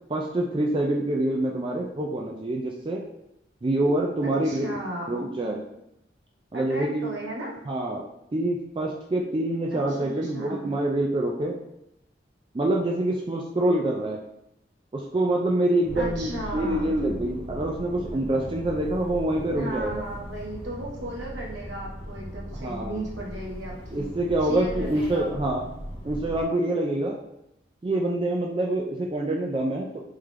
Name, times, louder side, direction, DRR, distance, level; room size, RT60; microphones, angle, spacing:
voice 1, 0.1-3.0 3.6-4.7 5.1-5.6 6.5-7.1 7.7-8.0 8.3-11.6 12.5-14.2 14.9-20.1 22.6-23.0 23.9-25.6 26.0-27.2 27.8-30.0, right 1 dB, 25° right, 0 dB, 0.3 m, -26 dB
voice 2, 4.2-5.2 6.5-7.5 9.9-10.7 15.9-16.9 19.5-24.1 24.5-25.3, right 1 dB, 80° right, -4 dB, 1.3 m, -36 dB
sound 1, 15.8-26.4, equal, 30° left, 0.9 m, -38 dB
3.6 x 3.2 x 3.3 m, 0.82 s
head